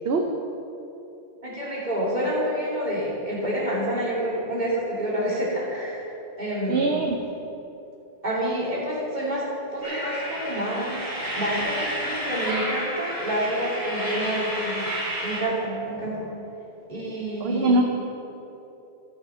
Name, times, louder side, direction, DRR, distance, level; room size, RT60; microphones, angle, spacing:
voice 1, 1.4-6.1 6.4-6.9 8.2-9.4 9.7-11.0 11.3-14.8 15.2-16.3 16.9-17.8, equal, 45° right, -7 dB, 3.2 m, -28 dB
voice 2, 6.7-7.2 17.4-17.8, right 2 dB, 70° right, 3 dB, 1.0 m, -22 dB
sound 1, 9.8-15.4, equal, 20° right, 2.6 m, -31 dB
14.5 x 6.7 x 5.7 m, 2.9 s
omnidirectional pair, 1.1 m